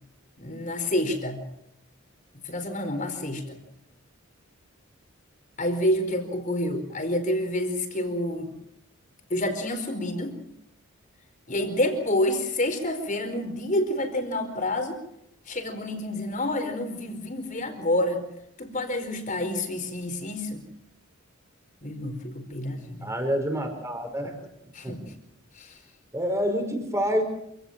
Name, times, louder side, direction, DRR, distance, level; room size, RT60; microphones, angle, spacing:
voice 1, 0.4-1.5 2.4-3.6 5.6-8.5 9.3-10.4 11.5-15.0 15.5-18.2 18.6-20.6 21.8-23.1 24.7-25.0 25.5-25.8, left 1 dB, 35° left, 7 dB, 4.7 m, -28 dB
voice 2, 23.0-24.4 24.8-25.0 26.1-27.2, equal, 15° right, 5 dB, 5.0 m, -27 dB
27.5 x 17.0 x 7.5 m, 0.79 s
head